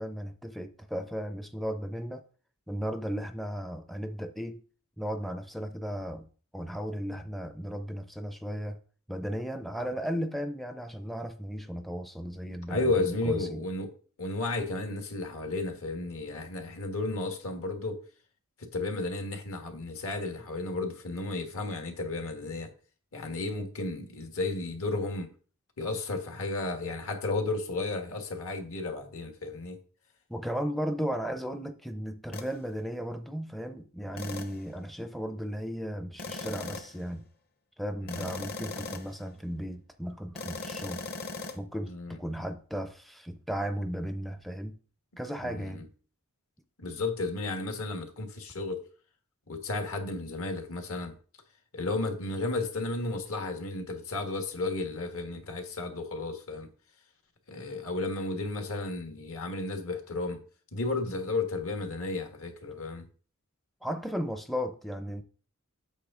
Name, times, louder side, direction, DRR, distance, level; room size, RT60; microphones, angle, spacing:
voice 1, 0.0-2.2 2.7-4.6 5.0-6.3 6.5-8.8 9.1-13.6 30.3-37.3 37.8-41.0 41.5-44.8 45.2-45.9 63.8-65.2, equal, ahead, 0.4 m, -35 dB
voice 2, 12.7-13.9 14.2-18.0 18.6-22.7 23.1-25.3 25.8-29.8 38.0-38.3 41.9-42.2 45.4-45.8 46.8-48.8 49.5-51.1 51.7-56.7 57.5-60.4 60.7-63.1, left 2 dB, 70° left, 1.6 m, -33 dB
sound 1, 32.3-32.5 34.2-34.6 36.2-37.0 38.1-39.2 40.4-41.6, left 3 dB, 45° left, 1.0 m, -38 dB
8.2 x 6.5 x 3.7 m
head